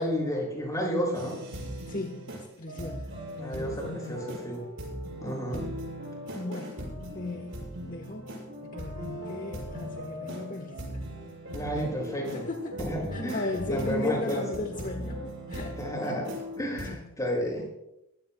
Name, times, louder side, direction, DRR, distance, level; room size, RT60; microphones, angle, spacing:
voice 1, 0.0-1.4 3.4-4.6 5.2-5.7 6.8-6.9 11.5-12.4 12.8-14.4 15.8-16.2 16.6-17.6, equal, 15° left, -2 dB, 6.4 m, -31 dB
sound 1, 1.1-16.9, equal, 60° right, 6.4 m, -39 dB
voice 2, 1.8-4.4 6.3-6.8 7.1-11.0 12.3-12.8 13.1-16.2 16.9-17.1, left 2 dB, 40° left, 4 dB, 1.1 m, -37 dB
22.5 x 16.0 x 2.3 m, 0.86 s
head